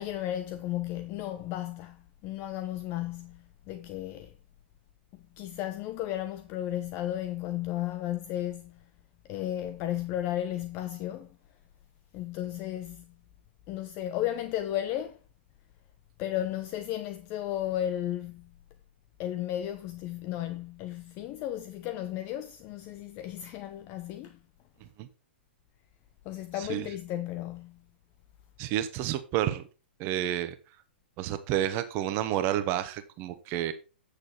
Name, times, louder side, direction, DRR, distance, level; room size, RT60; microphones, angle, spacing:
voice 1, 0.0-4.3 5.4-8.8 9.3-11.3 12.1-13.1 13.7-15.2 16.2-18.5 19.2-24.4 26.2-27.8, left 12 dB, 35° left, 0.7 m, -34 dB
voice 2, 28.6-29.6 30.0-30.5 31.2-33.7, right 12 dB, 35° right, 1.1 m, -30 dB
8.6 x 6.6 x 4.2 m
figure-of-eight pair, 110°, 6 cm